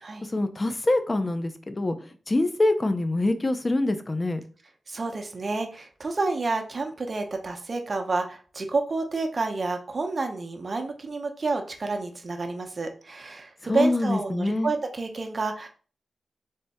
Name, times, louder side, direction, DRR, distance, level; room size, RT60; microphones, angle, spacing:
voice 1, 0.3-2.0 2.3-4.4 13.7-14.7, left 2 dB, 25° left, 9 dB, 0.6 m, -25 dB
voice 2, 4.9-15.7, right 3 dB, 40° right, 4 dB, 0.8 m, -29 dB
3.5 x 3.3 x 4.2 m, 0.40 s
wide cardioid pair, 95°, 0 cm